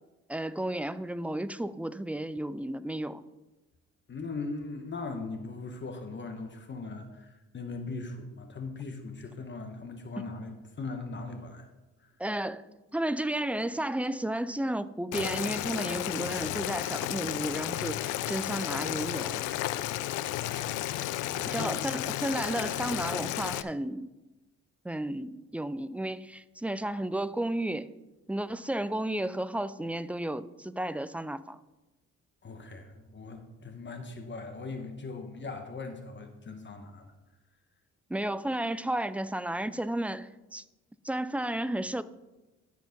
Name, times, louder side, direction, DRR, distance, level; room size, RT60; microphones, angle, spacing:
voice 1, 0.3-3.2 10.2-10.3 12.2-12.6 12.9-19.4 21.5-24.1 24.8-27.9 28.3-31.6 38.1-40.6 41.0-42.0, right 1 dB, 5° right, 0.3 m, -33 dB
voice 2, 4.1-11.7 12.0-12.1 21.2-21.9 32.4-37.1, left 3 dB, 40° left, 1.1 m, -39 dB
Boiling, 15.1-23.6, left 14 dB, 85° left, 0.5 m, -33 dB
12.0 x 4.7 x 5.2 m
cardioid pair, 90°, 30 cm